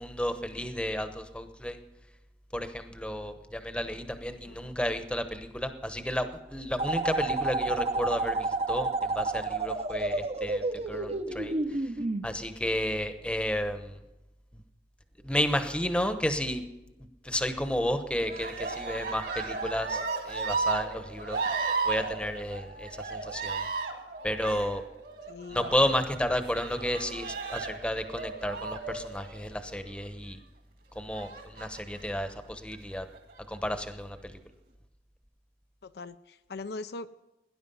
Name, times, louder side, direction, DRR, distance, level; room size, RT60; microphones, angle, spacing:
voice 1, 0.0-1.8 2.5-11.8 12.2-14.0 15.2-16.6 17.2-23.7 24.2-24.8 25.5-30.4 30.9-33.1 33.5-34.3, equal, 5° left, 9 dB, 0.9 m, -32 dB
sound 1, 6.8-12.3, right 2 dB, 35° right, 0.7 m, -30 dB
Cheering, 18.2-29.9 31.1-32.0 32.7-33.4, right 4 dB, 55° right, 2.0 m, -35 dB
voice 2, 25.3-25.7 35.8-37.1, left 3 dB, 65° left, 11 dB, 0.5 m, -40 dB
18.0 x 10.5 x 5.5 m, 0.98 s
head